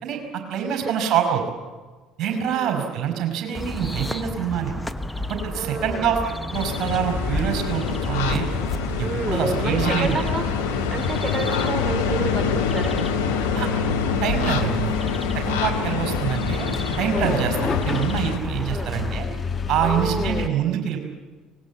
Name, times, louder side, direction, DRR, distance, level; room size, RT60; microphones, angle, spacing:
voice 1, 0.0-1.4 2.2-4.8 5.3-6.2 6.5-8.5 9.0-10.2 13.5-13.7 14.2-15.0 15.3-16.7 17.0-19.3 19.7-21.0, right 8 dB, 50° right, 5 dB, 5.3 m, -25 dB
voice 2, 0.7-1.1 2.3-2.9 5.6-6.1 9.0-10.6 10.9-13.1 17.1-17.7 18.7-19.0 19.8-20.6, right 3 dB, 20° right, 4 dB, 2.9 m, -30 dB
sound 1, 3.5-19.2, left 1 dB, 5° left, 1.2 m, -32 dB
sound 2, 6.5-18.4, left 6 dB, 70° left, 1.8 m, -26 dB
sound 3, 14.4-20.5, left 5 dB, 30° left, 1.5 m, -31 dB
25.0 x 19.5 x 8.3 m, 1.3 s
figure-of-eight pair, 60°, 0 cm